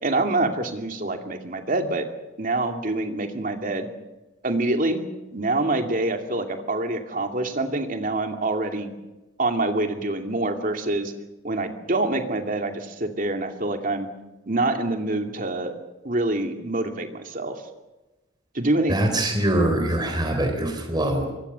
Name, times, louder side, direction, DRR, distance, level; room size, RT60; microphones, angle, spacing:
voice 1, 0.0-2.0 2.4-3.9 4.4-5.0 5.3-8.9 9.4-11.1 11.4-14.1 14.5-15.7 16.0-17.6 18.5-19.1, right 2 dB, 40° right, 5 dB, 2.6 m, -26 dB
voice 2, 18.9-21.3, right 1 dB, 20° right, 4 dB, 3.8 m, -23 dB
25.0 x 21.5 x 6.9 m, 1.1 s
head